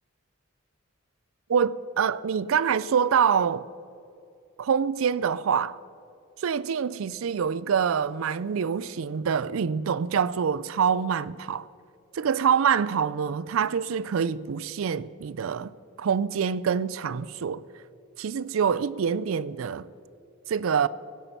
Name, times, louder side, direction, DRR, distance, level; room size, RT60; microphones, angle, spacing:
voice 1, 1.5-3.7 4.6-5.8 6.4-11.7 12.1-15.7 16.0-17.6 18.2-19.9 20.5-20.9, right 7 dB, 80° right, 0.4 m, -25 dB
16.5 x 8.4 x 5.9 m
head